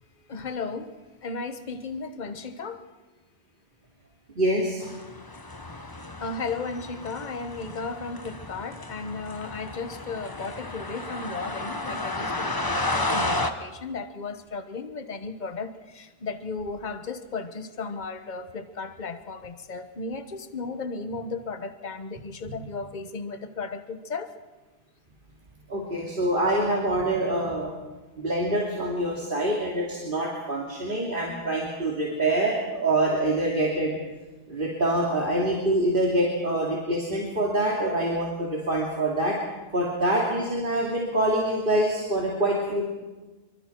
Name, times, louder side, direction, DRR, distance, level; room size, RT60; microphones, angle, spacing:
voice 1, 0.3-2.8 6.2-24.3, left 4 dB, 40° left, 1.2 m, -35 dB
voice 2, 4.4-4.8 22.5-22.6 25.7-27.7 28.2-33.9 34.5-39.4 39.7-42.9, right 1 dB, 45° right, 2.9 m, -25 dB
sound 1, 4.8-13.5, left 2 dB, 20° left, 1.1 m, -32 dB
25.0 x 24.5 x 4.6 m
omnidirectional pair, 1.2 m